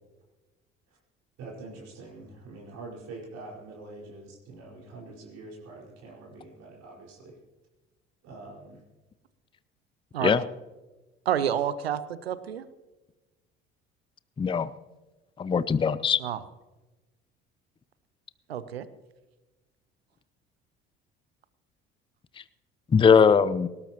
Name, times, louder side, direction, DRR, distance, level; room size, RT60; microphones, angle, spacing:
voice 1, 1.4-7.4 8.2-8.8, right 3 dB, 60° right, -4 dB, 4.9 m, -45 dB
voice 2, 11.3-12.6 16.2-16.4 18.5-18.9, right 9 dB, 80° right, 16 dB, 0.7 m, -29 dB
voice 3, 14.4-14.7 15.4-16.2 22.9-23.7, left 6 dB, 15° left, 16 dB, 0.6 m, -20 dB
20.0 x 18.5 x 3.0 m, 1.2 s
figure-of-eight pair, 55°, 30 cm